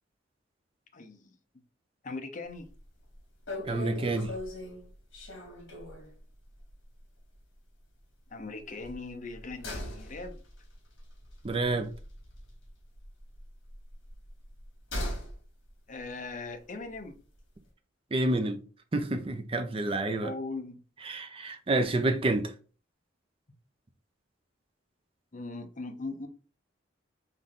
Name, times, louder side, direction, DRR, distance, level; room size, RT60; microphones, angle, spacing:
voice 1, 0.9-1.4 2.0-2.7 8.3-10.4 15.9-17.2 20.2-20.8 25.3-26.3, left 3 dB, 40° left, 0.7 m, -39 dB
sound 1, 2.6-2.8 3.1-3.2 3.5-6.2 6.5-6.7 7.0-7.1 8.7-12.7 12.9-15.4 15.7-15.8, left 1 dB, 70° left, 1.9 m, -40 dB
voice 2, 3.7-4.3 11.4-11.9 18.1-18.6 18.9-20.3 21.1-22.5, right 2 dB, 30° right, 0.5 m, -28 dB
3.8 x 3.1 x 3.6 m
head